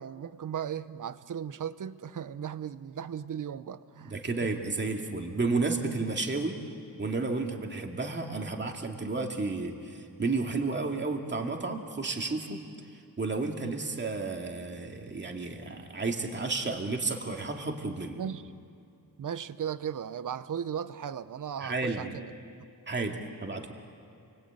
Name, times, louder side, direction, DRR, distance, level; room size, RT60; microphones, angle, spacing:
voice 1, 0.0-4.1 18.1-18.5 19.2-22.3, right 8 dB, 55° right, 0.8 m, -36 dB
voice 2, 4.0-6.6 7.0-12.6 13.2-18.2 21.6-22.1 22.9-23.7, right 3 dB, 30° right, 2.4 m, -32 dB
29.5 x 22.0 x 9.0 m
wide cardioid pair, 125°, 37 cm